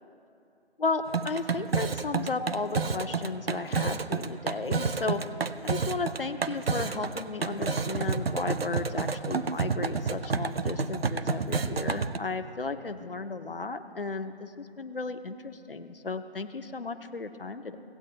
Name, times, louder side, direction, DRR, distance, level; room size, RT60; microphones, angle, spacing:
voice 1, 0.8-5.2 5.6-17.8, left 3 dB, 55° left, 9 dB, 0.8 m, -34 dB
sound 1, 1.1-12.2, right 4 dB, 65° right, 0.6 m, -30 dB
18.0 x 8.2 x 2.8 m, 2.6 s
figure-of-eight pair, 165°, 33 cm